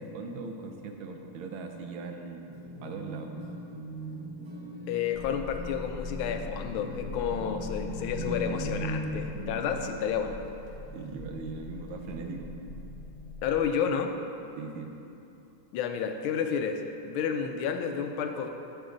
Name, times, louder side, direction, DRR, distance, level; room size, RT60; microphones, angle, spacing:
voice 1, 0.0-2.5 2.8-3.4 10.9-12.5 14.6-14.9, right 4 dB, 75° right, 4 dB, 1.5 m, -39 dB
sound 1, 2.4-10.1 11.1-11.2 11.6-12.6, right 1 dB, 20° right, 0.8 m, -39 dB
voice 2, 4.9-10.4 13.4-14.1 15.7-16.8 17.1-18.5, left 7 dB, 85° left, 5 dB, 1.5 m, -30 dB
sound 2, 5.1-13.8, left 4 dB, 45° left, 1.6 m, -42 dB
13.0 x 5.3 x 3.8 m, 2.9 s
omnidirectional pair, 2.2 m